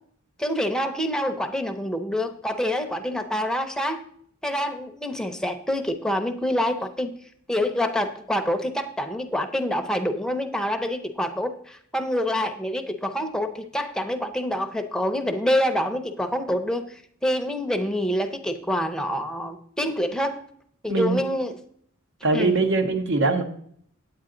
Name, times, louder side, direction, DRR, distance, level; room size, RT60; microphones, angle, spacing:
voice 1, 0.4-4.0 4.4-7.1 7.5-20.4 20.8-21.6 22.3-22.6, equal, 5° left, 6 dB, 0.7 m, -26 dB
voice 2, 20.9-21.2 22.2-23.4, right 3 dB, 65° right, 7 dB, 1.1 m, -22 dB
8.8 x 8.7 x 3.8 m, 0.63 s
head